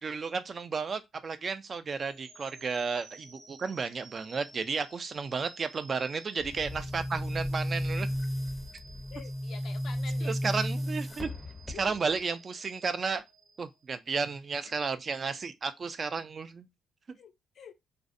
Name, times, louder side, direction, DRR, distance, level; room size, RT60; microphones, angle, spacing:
voice 1, 0.0-8.1 10.2-11.3 11.7-13.2 13.6-16.7, right 5 dB, 40° right, 0.3 m, -33 dB
sound 1, 2.0-14.1, right 3 dB, 90° right, 0.8 m, -55 dB
Boom, 6.4-12.2, equal, 10° left, 0.5 m, -34 dB
voice 2, 9.1-10.3 11.7-12.0 17.2-17.7, left 7 dB, 65° left, 0.4 m, -48 dB
2.5 x 2.0 x 2.5 m
cardioid pair, 90°, 0 cm